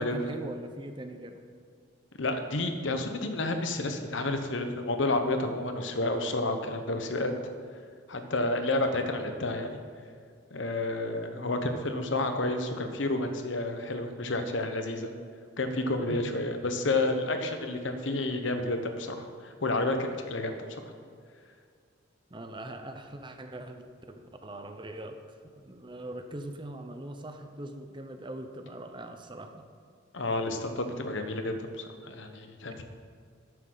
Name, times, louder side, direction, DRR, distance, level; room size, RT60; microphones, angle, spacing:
voice 1, 0.0-1.4 16.1-16.4 22.3-29.7, right 1 dB, 25° right, 6 dB, 0.7 m, -41 dB
voice 2, 2.2-7.3 8.1-9.8 10.5-15.1 15.6-20.5 30.1-32.8, left 2 dB, 70° left, 6 dB, 1.1 m, -30 dB
12.5 x 9.3 x 4.0 m, 2.1 s
head